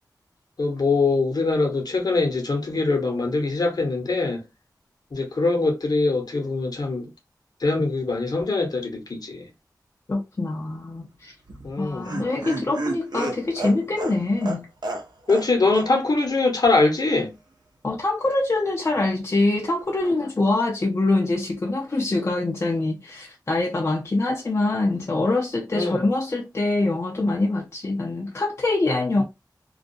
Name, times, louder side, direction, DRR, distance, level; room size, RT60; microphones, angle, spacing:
voice 1, 0.6-4.4 5.1-7.1 7.6-9.5 11.6-12.1 15.3-17.3 25.7-26.1, left 3 dB, 60° left, 0.9 m, -23 dB
voice 2, 10.1-11.3 11.8-14.7 17.8-29.2, left 2 dB, 40° left, 0.5 m, -24 dB
Laughter, 11.5-15.5 15.7-15.9 16.2-16.3, right 2 dB, 65° right, 0.7 m, -31 dB
2.3 x 2.1 x 2.6 m
cardioid pair, 45°, 8 cm